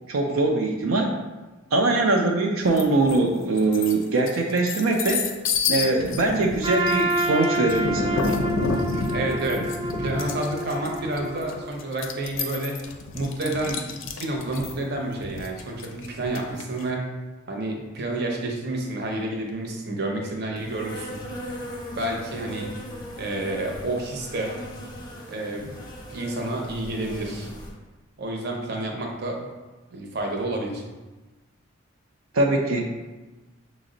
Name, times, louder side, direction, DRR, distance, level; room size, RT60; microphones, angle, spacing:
voice 1, 0.1-1.1 1.7-5.2 5.7-8.3 32.3-32.9, right 2 dB, 90° right, 1 dB, 0.4 m, -22 dB
sound 1, 2.8-3.2 3.6-16.8, left 4 dB, 70° left, 0.4 m, -30 dB
Trumpet, 6.6-11.7, right 1 dB, 20° right, 0.3 m, -28 dB
voice 2, 9.1-12.8 13.1-13.9 14.2-17.1 17.5-22.7 23.2-24.6 25.3-25.8 26.1-27.5 28.2-29.5 29.9-30.8, right 2 dB, 55° right, 1 dB, 0.7 m, -30 dB
Insect, 20.6-27.7, equal, 20° left, 0.6 m, -39 dB
5.8 x 2.0 x 3.8 m, 1.2 s
head